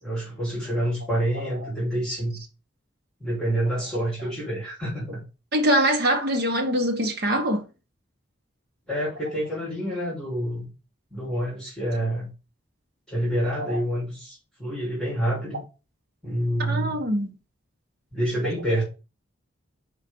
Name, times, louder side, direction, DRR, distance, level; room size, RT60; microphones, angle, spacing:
voice 1, 0.0-2.4 3.2-5.2 8.9-10.7 11.1-12.3 13.1-15.6 16.2-17.0 18.1-18.8, right 1 dB, 5° left, 3.4 m, -27 dB
voice 2, 5.5-7.6 13.6-13.8 16.7-17.3, equal, 55° right, 1.4 m, -23 dB
5.2 x 5.1 x 5.3 m
head